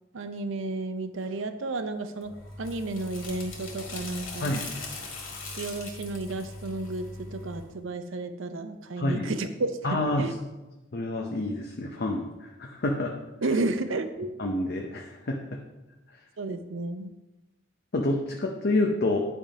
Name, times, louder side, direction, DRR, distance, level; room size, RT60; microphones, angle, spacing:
voice 1, 0.1-2.3 2.6-4.6 5.6-10.3 13.4-14.3 16.4-17.1, right 2 dB, 75° right, 9 dB, 0.6 m, -32 dB
sound 1, 2.2-7.7, left 3 dB, 75° left, 2.1 m, -40 dB
voice 2, 9.0-9.3 9.8-10.3 10.9-13.1 14.4-15.4 17.9-19.2, left 2 dB, 55° left, 1 dB, 0.7 m, -28 dB
9.9 x 3.6 x 5.0 m, 1.1 s
head